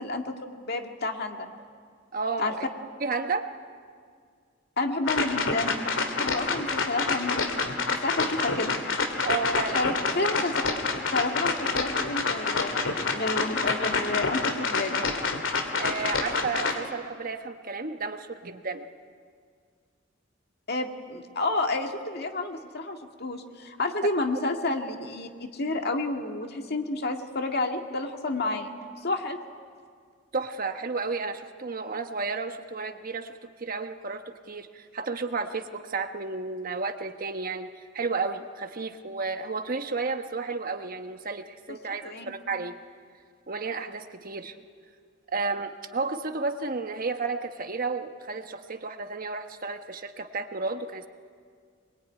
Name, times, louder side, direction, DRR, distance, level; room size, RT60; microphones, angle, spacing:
voice 1, 0.0-1.5 2.4-2.5 4.8-7.4 7.9-8.8 9.8-10.6 11.1-12.7 13.1-15.0 20.7-28.7 29.0-29.4 41.7-41.8 42.0-42.3, left 2 dB, 55° left, 4 dB, 2.0 m, -30 dB
voice 2, 2.1-2.6 3.0-3.5 9.2-9.9 15.8-18.9 30.3-33.3 33.6-42.7 43.5-44.6 45.3-51.1, right 4 dB, 50° right, 7 dB, 1.3 m, -32 dB
sound 1, 5.1-16.8, left 4 dB, 85° left, 2.6 m, -28 dB
23.5 x 22.0 x 9.4 m, 2.1 s
head